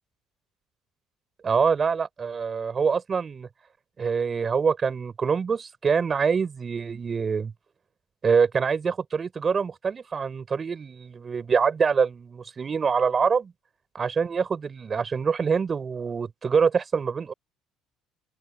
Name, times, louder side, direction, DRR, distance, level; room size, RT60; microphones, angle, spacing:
voice 1, 1.4-3.5 4.0-7.5 8.2-13.5 13.9-17.3, right 6 dB, 35° right, 6.9 m, -25 dB
open air
supercardioid pair, 90°, 0 cm